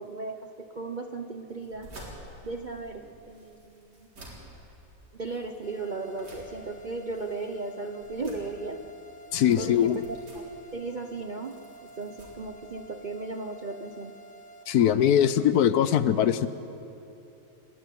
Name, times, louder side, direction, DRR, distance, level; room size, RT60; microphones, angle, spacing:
voice 1, 0.0-1.9 2.4-4.1 5.1-8.8 9.6-14.1, right 3 dB, 40° right, 6 dB, 0.7 m, -36 dB
sound 1, 1.5-13.2, right 1 dB, 75° right, 4.6 m, -51 dB
sound 2, 5.6-14.6, right 2 dB, 45° left, 1.4 m, -50 dB
voice 2, 9.3-10.0 14.7-16.5, left 10 dB, 70° left, 14 dB, 1.2 m, -21 dB
29.5 x 12.0 x 9.3 m, 2.9 s
omnidirectional pair, 1.8 m